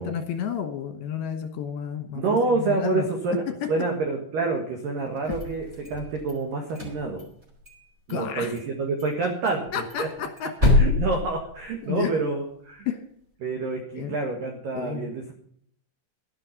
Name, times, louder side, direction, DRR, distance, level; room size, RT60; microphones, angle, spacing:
voice 1, 0.0-3.1 8.1-8.5 9.7-10.7 11.8-12.1 12.9-13.0 14.0-14.2 14.7-15.1, left 8 dB, 70° left, 7 dB, 2.6 m, -31 dB
voice 2, 2.1-3.4 3.7-7.2 8.1-9.7 10.0-10.1 10.7-12.9 13.4-15.3, right 3 dB, 55° right, 2 dB, 2.7 m, -27 dB
sound 1, 5.2-6.3 6.7-7.8 8.1-8.2 8.6-8.7 9.0-9.1 9.5-12.0, left 3 dB, 15° right, 3.8 m, -26 dB
12.5 x 11.0 x 5.3 m, 0.66 s
omnidirectional pair, 5.7 m